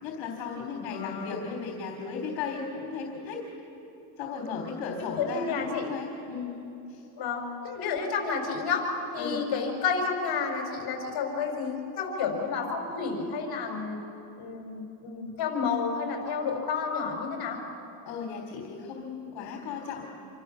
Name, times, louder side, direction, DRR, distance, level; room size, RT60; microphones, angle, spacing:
voice 1, 0.0-3.4 4.2-6.6 6.9-7.1 9.2-9.4 18.1-20.0, left 5 dB, 65° left, 1 dB, 3.6 m, -36 dB
voice 2, 0.8-1.3 5.2-5.9 7.2-14.0 14.4-17.6, left 5 dB, 50° left, 2 dB, 5.8 m, -30 dB
27.0 x 24.5 x 7.0 m, 2.9 s
cardioid pair, 125°, 49 cm